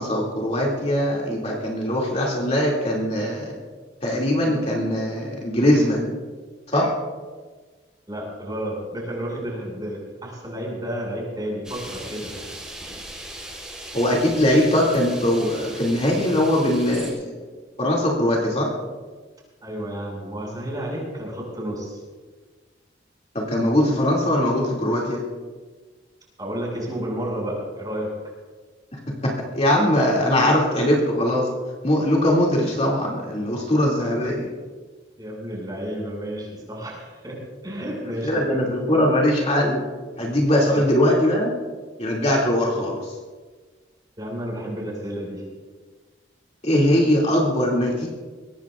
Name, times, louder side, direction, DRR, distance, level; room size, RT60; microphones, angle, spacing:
voice 1, 0.0-3.5 4.0-6.1 6.7-6.9 13.9-17.3 17.8-18.7 23.3-25.2 29.2-31.5 31.8-34.5 38.2-39.8 40.2-41.5 42.0-43.2 46.6-48.1, left 1 dB, 35° left, -3 dB, 2.5 m, -21 dB
voice 2, 8.1-12.3 19.6-22.0 26.4-28.1 35.2-38.6 40.7-40.8 44.2-45.4, right 1 dB, 20° right, -2 dB, 6.1 m, -31 dB
sound 1, 11.6-17.1, right 1 dB, 5° right, 3.8 m, -38 dB
23.0 x 18.5 x 2.5 m, 1.4 s
head